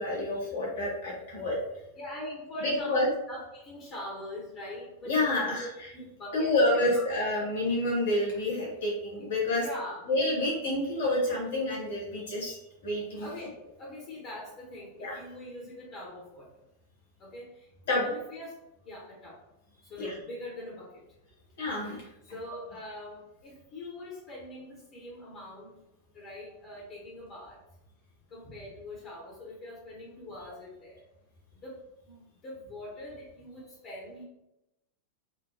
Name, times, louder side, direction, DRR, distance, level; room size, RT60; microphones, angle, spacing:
voice 1, 0.0-1.6 2.6-3.1 5.0-5.9 6.3-9.6 10.1-13.3 15.0-15.2 17.9-18.1 20.0-20.1 21.6-22.0, left 1 dB, 60° left, -4 dB, 1.4 m, -28 dB
voice 2, 1.9-7.0 9.2-9.3 9.6-10.1 13.2-16.5 17.2-19.4 19.9-20.9 22.3-25.7 26.1-27.6 28.3-31.0 31.6-31.7 32.1-34.2, left 1 dB, 35° left, -4 dB, 0.9 m, -43 dB
3.7 x 2.2 x 2.7 m, 0.89 s
figure-of-eight pair, 90°, 0 cm